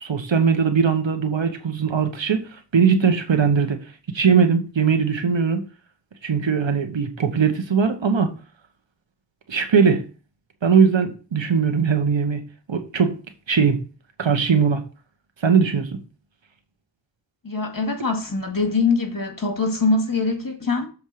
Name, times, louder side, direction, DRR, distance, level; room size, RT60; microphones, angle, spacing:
voice 1, 0.0-3.8 4.1-5.7 6.2-8.3 9.5-10.0 10.6-12.4 12.7-13.2 13.5-13.8 14.2-14.8 15.4-15.9, right 6 dB, 90° right, 1.2 m, -20 dB
voice 2, 17.4-20.9, left 3 dB, 50° left, 2.2 m, -23 dB
7.2 x 4.5 x 6.4 m
wide cardioid pair, 45°, 44 cm